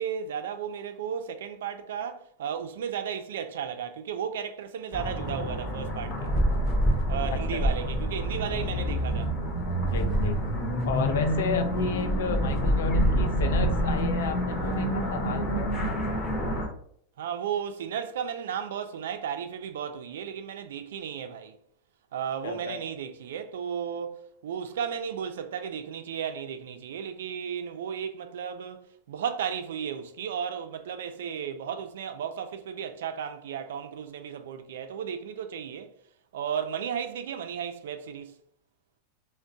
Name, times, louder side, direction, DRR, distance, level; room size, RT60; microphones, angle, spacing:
voice 1, 0.0-6.3 7.1-9.3 17.2-21.6 22.1-35.9 36.3-38.3, right 8 dB, 85° right, 0.4 m, -34 dB
sound 1, 4.9-16.7, equal, 25° left, 0.7 m, -27 dB
voice 2, 7.3-7.6 9.9-10.4 10.9-15.7 22.4-22.8, left 6 dB, 90° left, 0.4 m, -33 dB
3.4 x 2.1 x 2.6 m
supercardioid pair, 150°, 0 cm